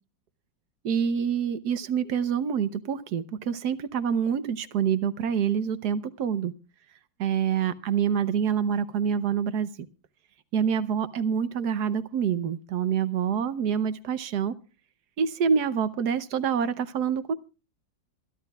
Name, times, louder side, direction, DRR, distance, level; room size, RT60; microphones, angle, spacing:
voice 1, 0.8-6.5 7.2-9.7 10.5-14.5 15.2-17.3, right 7 dB, 60° right, 14 dB, 1.3 m, -26 dB
27.0 x 11.0 x 2.4 m, 0.33 s
omnidirectional pair, 2.1 m